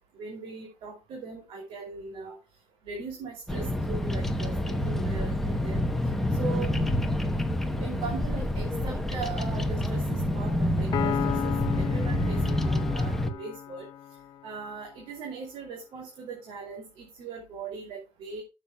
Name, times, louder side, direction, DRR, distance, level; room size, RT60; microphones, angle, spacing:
voice 1, 0.1-2.4 2.8-5.8 6.4-6.8 7.8-13.9 14.4-18.4, right 4 dB, 65° right, 1 dB, 2.7 m, -39 dB
Bird vocalization bird call bird song, 3.5-13.3, left 1 dB, 5° left, 0.8 m, -28 dB
Piano, 10.9-14.5, left 10 dB, 45° left, 0.7 m, -34 dB
15.0 x 7.2 x 2.3 m, 0.29 s
cardioid pair, 170°, 10 cm